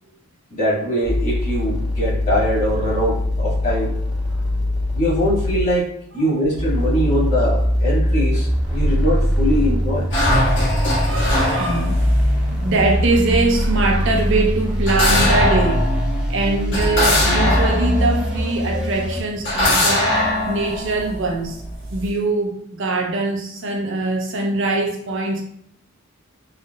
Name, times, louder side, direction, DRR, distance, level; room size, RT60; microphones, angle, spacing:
voice 1, 0.5-4.0 4.9-5.9 6.1-10.1 10.5-10.6, equal, 35° left, -8 dB, 1.4 m, -22 dB
sound 1, 1.0-5.7 6.5-19.2, equal, 5° right, 0.5 m, -21 dB
sound 2, 10.1-18.9 19.5-22.1, left 1 dB, 55° left, 1.3 m, -22 dB
voice 2, 11.0-15.9 16.3-21.6 21.9-25.4, right 2 dB, 60° right, 1 dB, 0.5 m, -22 dB
3.3 x 2.8 x 2.2 m, 0.67 s
head